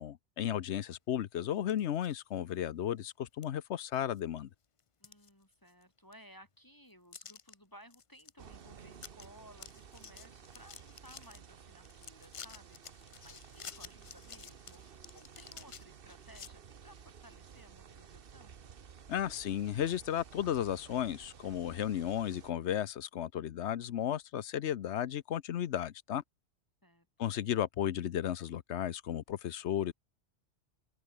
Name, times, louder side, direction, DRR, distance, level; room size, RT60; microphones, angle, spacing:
voice 1, 0.0-4.5 19.1-26.2 27.2-29.9, left 10 dB, 75° left, 1.0 m, -34 dB
sound 1, 1.6-2.2 2.6-2.7 3.4-3.5 3.9-4.4 4.8-5.8 6.1-6.2 7.1-7.5 7.9-8.3 8.6-8.7 8.9-9.3 9.5-11.4 11.8-16.5, left 6 dB, 40° left, 0.5 m, -51 dB
voice 2, 5.0-18.6 26.8-27.4, equal, 15° left, 5.8 m, -59 dB
sound 2, 8.4-22.5, right 7 dB, 55° right, 1.1 m, -54 dB
open air
omnidirectional pair, 1.2 m